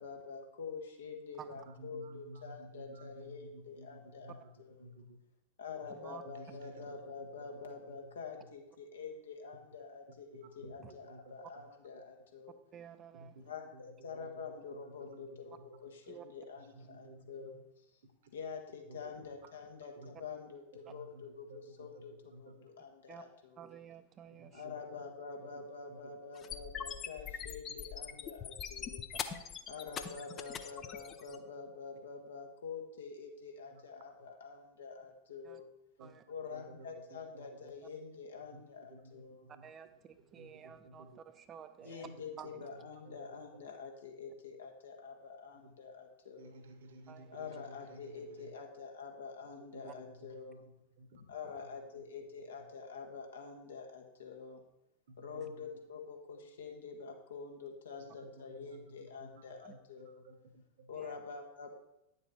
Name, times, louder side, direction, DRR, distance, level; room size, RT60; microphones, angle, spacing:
voice 1, 0.0-4.9 5.6-12.6 13.4-17.8 18.3-23.7 24.5-29.0 29.7-35.7 36.3-39.5 41.8-46.6 47.3-50.7 51.1-54.6 55.2-60.2 60.9-61.7, left 5 dB, 65° left, 2 dB, 1.5 m, -47 dB
voice 2, 1.7-4.5 4.8-5.2 5.8-5.9 6.2-7.0 7.3-7.6 7.9-8.0 10.4-10.7 11.0-11.6 11.9-12.0 13.1-13.4 13.7-13.8 14.2-14.3 14.7-15.8 16.6-17.6 18.9-19.0 19.4-19.5 19.9-20.1 20.8-22.0 22.3-22.7 24.4-25.0 25.4-26.1 30.1-30.2 31.3-31.4 33.7-34.0 36.0-36.1 36.5-37.7 38.5-38.6 38.9-39.6 40.3-41.2 41.8-42.1 42.5-42.7 43.0-43.1 45.6-45.7 46.4-48.5 49.7-51.2 51.9-52.0 55.1-55.7 58.2-60.9, right 1 dB, 60° right, 8 dB, 1.2 m, -54 dB
voice 3, 5.9-6.2 10.8-10.9 12.7-13.3 16.1-16.3 23.1-23.2 23.6-24.6 29.3-29.6 35.4-35.6 36.0-36.2 39.6-42.1 42.4-42.5 47.1-47.5 59.6-59.7 61.0-61.2, right 9 dB, 25° right, 10 dB, 0.7 m, -52 dB
sound 1, 26.4-31.4, left 8 dB, 25° left, 0.6 m, -42 dB
10.0 x 7.0 x 4.3 m, 0.86 s
figure-of-eight pair, 90°, 0 cm